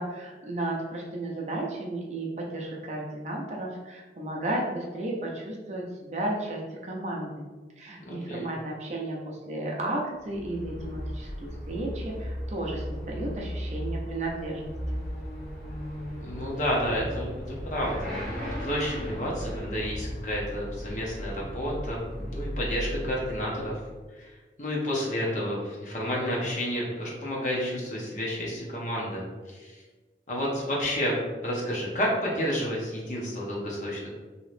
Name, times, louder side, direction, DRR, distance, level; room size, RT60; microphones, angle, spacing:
voice 1, 0.0-7.5 7.8-15.0, right 1 dB, 40° right, -1 dB, 0.5 m, -33 dB
voice 2, 8.1-8.5 16.2-23.8 24.2-24.3 24.6-29.8 30.3-31.1 31.4-34.1, equal, 45° left, -3 dB, 0.8 m, -30 dB
Motorcycle / Accelerating revving vroom, 10.2-24.0, equal, 5° left, 1.1 m, -36 dB
3.0 x 2.8 x 3.1 m, 1.3 s
head